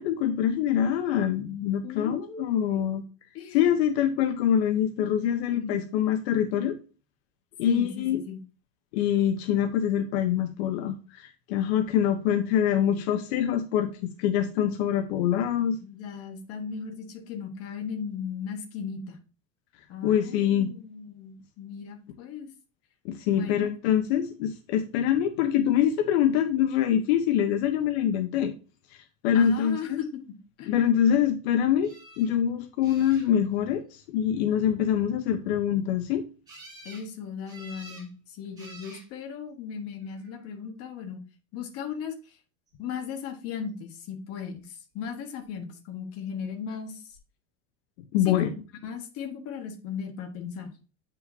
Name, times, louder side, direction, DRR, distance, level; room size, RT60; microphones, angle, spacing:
voice 1, 0.0-3.0 3.5-6.8 7.6-8.2 8.9-13.9 14.2-15.8 20.0-20.7 23.0-28.5 29.2-30.0 30.7-36.2 48.1-48.5, left 9 dB, 80° left, 8 dB, 0.9 m, -25 dB
voice 2, 1.8-2.9 3.3-3.6 5.5-5.9 7.6-8.4 15.8-19.2 19.9-22.5 23.3-23.7 29.3-30.2 30.6-30.7 36.8-41.2 41.5-42.4 42.8-47.2 48.2-48.5 48.8-50.7, left 7 dB, 45° left, 5 dB, 1.5 m, -37 dB
sound 1, 31.8-32.3 32.8-33.6 36.5-37.1 37.5-38.1 38.6-39.1 40.0-40.5 46.7-46.8 47.1-47.2, right 1 dB, 10° right, 3.7 m, -48 dB
8.2 x 5.6 x 2.7 m, 0.34 s
cardioid pair, 165°, 32 cm